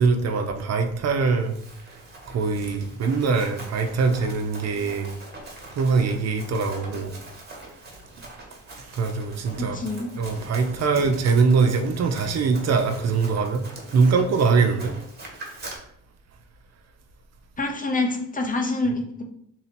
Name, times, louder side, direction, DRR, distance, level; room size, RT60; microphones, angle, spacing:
voice 1, 0.0-1.5 2.3-5.1 5.8-7.1 8.9-9.8 10.2-13.6 13.9-14.9, right 4 dB, 60° right, 0.7 m, -22 dB
Run, 1.2-15.8, right 2 dB, 30° right, 1.5 m, -43 dB
voice 2, 9.6-10.1 17.6-19.2, left 2 dB, 25° left, 0.8 m, -26 dB
3.9 x 2.9 x 4.2 m
cardioid pair, 90°, 30 cm